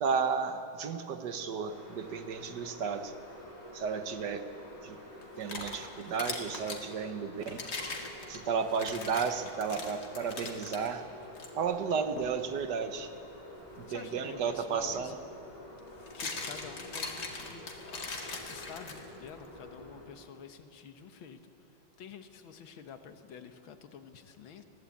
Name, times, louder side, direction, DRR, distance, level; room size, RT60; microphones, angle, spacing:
voice 1, 0.0-3.1 3.7-4.5 4.8-5.0 5.4-7.6 8.3-11.0 11.5-13.1 13.8-15.2, right 6 dB, 60° right, 8 dB, 1.4 m, -33 dB
sound 1, 1.7-20.1, left 1 dB, 20° left, 4.1 m, -49 dB
sound 2, 5.2-6.8 7.4-10.9 11.3-11.5 12.2-12.4 14.5-14.6 15.8-19.3, left 3 dB, 55° left, 2.5 m, -40 dB
voice 2, 13.9-15.1 16.2-17.6 18.5-21.4 22.0-24.6, left 7 dB, 80° left, 8 dB, 1.9 m, -48 dB
20.5 x 15.5 x 8.5 m, 2.8 s
omnidirectional pair, 2.2 m